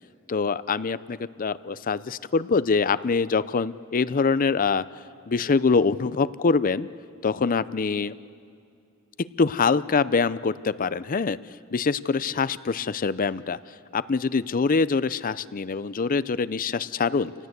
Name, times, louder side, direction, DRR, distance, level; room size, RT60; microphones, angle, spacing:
voice 1, 0.3-4.8 5.3-6.9 7.2-8.1 9.4-11.4 11.7-13.6 13.9-17.3, left 4 dB, 40° left, 16 dB, 0.5 m, -24 dB
29.0 x 18.0 x 8.1 m, 2.4 s
head